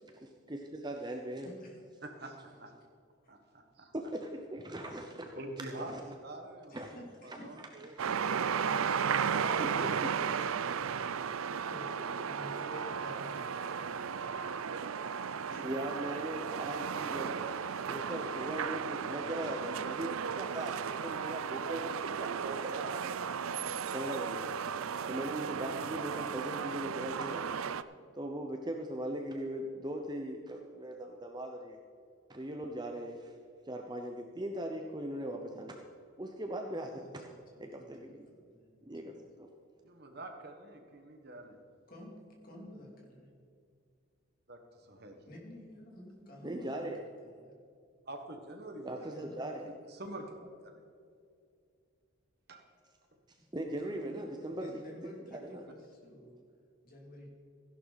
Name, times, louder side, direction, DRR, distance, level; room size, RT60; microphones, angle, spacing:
voice 1, 0.0-1.5 3.9-5.4 5.9-6.0 6.7-7.0 7.9-8.0 9.6-10.8 15.6-17.5 17.9-23.2 23.9-24.6 25.1-27.5 28.1-31.8 32.3-33.3 33.7-35.8 36.2-37.2 37.6-38.3 38.9-39.1 39.4-39.5 46.4-47.0 48.8-49.7 53.3-54.9 55.3-55.6, right 1 dB, 20° right, 3 dB, 0.7 m, -40 dB
voice 2, 1.4-1.8 3.2-3.3 6.7-7.5 7.8-8.3 11.7-14.0 15.5-15.6 25.3-25.6 36.9-39.2 41.9-43.3 45.3-47.5 49.0-49.4 50.1-50.5 53.6-56.4 56.8-57.4, left 1 dB, 40° left, -1 dB, 2.9 m, -52 dB
voice 3, 2.0-2.7 3.3-3.9 5.3-6.8 7.2-7.9 9.1-9.7 39.8-41.6 44.5-45.2 48.1-49.1 49.7-50.8 52.5-52.7, right 2 dB, 50° right, 4 dB, 1.5 m, -46 dB
sound 1, 8.0-27.8, right 7 dB, 75° right, 0.5 m, -35 dB
15.5 x 11.0 x 4.1 m, 2.3 s
head